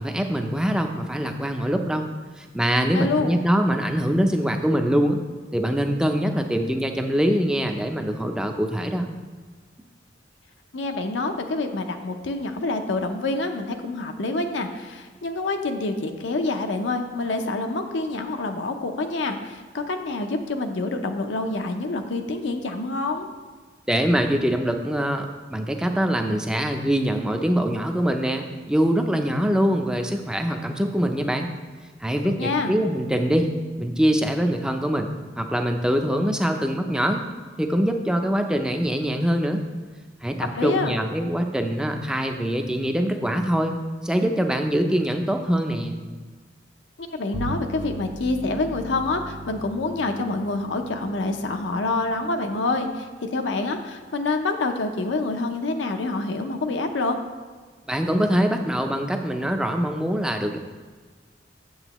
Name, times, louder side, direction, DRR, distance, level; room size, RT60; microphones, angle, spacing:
voice 1, 0.0-2.1 2.4-5.2 5.5-9.1 23.9-31.5 32.0-35.1 35.4-37.3 37.6-39.6 40.2-45.9 57.9-60.6, equal, 5° right, 4 dB, 0.4 m, -23 dB
voice 2, 2.9-3.4 10.7-23.3 32.4-32.7 40.5-40.9 47.0-57.2, left 3 dB, 75° left, 5 dB, 0.6 m, -27 dB
Bowed string instrument, 47.3-53.0, right 2 dB, 65° right, 0.8 m, -38 dB
7.9 x 7.5 x 3.0 m, 1.5 s
head